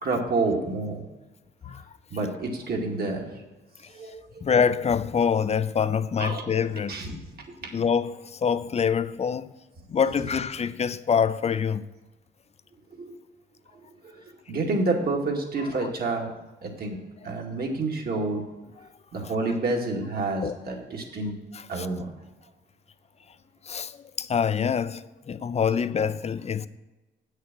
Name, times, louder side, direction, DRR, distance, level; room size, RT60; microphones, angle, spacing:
voice 1, 0.0-1.0 2.1-3.3 3.9-4.4 6.2-6.4 6.9-7.1 7.6-7.8 13.0-13.2 14.0-14.2 14.5-16.3 16.6-17.0 17.2-18.4 19.1-21.3 21.7-22.1, right 3 dB, 50° right, 2.2 m, -28 dB
voice 2, 4.4-7.2 7.7-9.5 9.9-11.9 15.6-15.9 18.1-18.2 18.8-18.9 20.4-20.5 21.5-21.9 23.6-26.7, left 7 dB, 35° left, 0.5 m, -26 dB
8.5 x 6.5 x 6.1 m
cardioid pair, 90°, 20 cm